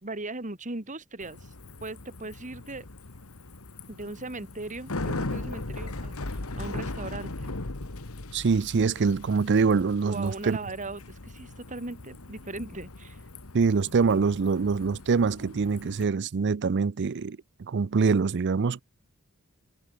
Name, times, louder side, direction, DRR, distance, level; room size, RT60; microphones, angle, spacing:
voice 1, 0.0-1.5 1.8-2.9 3.9-7.5 10.1-13.2, right 2 dB, 35° right, 2.7 m, -38 dB
Bicycle, 1.2-16.0, left 2 dB, 80° left, 1.7 m, -39 dB
voice 2, 8.3-10.6 13.5-17.4 17.7-18.8, right 5 dB, 55° right, 0.5 m, -24 dB
head